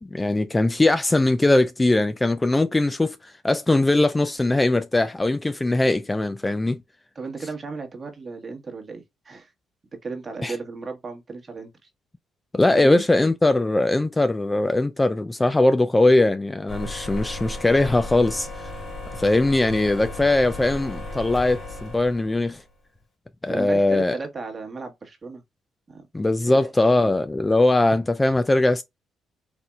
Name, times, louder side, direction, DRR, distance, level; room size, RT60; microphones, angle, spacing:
voice 1, 0.0-6.8 10.4-10.5 12.5-18.7 19.1-22.6 23.4-24.2 26.1-28.8, left 2 dB, 15° left, 0.3 m, -20 dB
voice 2, 7.1-9.5 10.0-11.7 12.7-13.0 23.5-25.4 25.9-26.0 26.5-27.0, right 4 dB, 35° right, 1.3 m, -35 dB
sound 1, 16.7-22.6, left 1 dB, 50° left, 1.6 m, -35 dB
4.2 x 2.5 x 2.3 m
cardioid pair, 90°, 0 cm